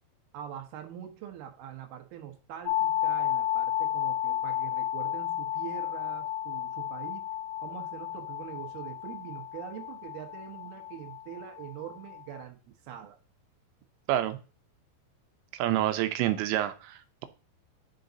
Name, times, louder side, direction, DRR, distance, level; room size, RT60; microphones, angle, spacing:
voice 1, 0.3-7.3 7.6-13.2, right 11 dB, 70° right, 4 dB, 2.7 m, -43 dB
sound 1, 2.7-12.4, left 12 dB, 90° left, 2.1 m, -32 dB
voice 2, 15.5-17.3, right 13 dB, 85° right, 9 dB, 2.9 m, -28 dB
10.5 x 3.9 x 3.9 m, 0.34 s
omnidirectional pair, 5.1 m